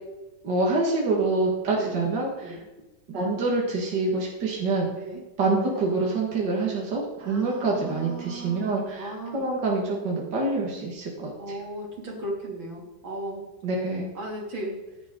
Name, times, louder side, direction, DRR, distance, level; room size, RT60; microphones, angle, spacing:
voice 1, 0.4-2.6 3.1-4.9 5.4-11.6 13.6-14.1, right 3 dB, 65° right, -2 dB, 2.5 m, -26 dB
voice 2, 1.7-2.0 2.4-2.6 5.0-5.2 7.2-9.4 11.4-13.4 14.2-14.8, right 1 dB, 80° right, -1 dB, 3.6 m, -36 dB
15.5 x 10.5 x 3.9 m, 1.0 s
omnidirectional pair, 2.1 m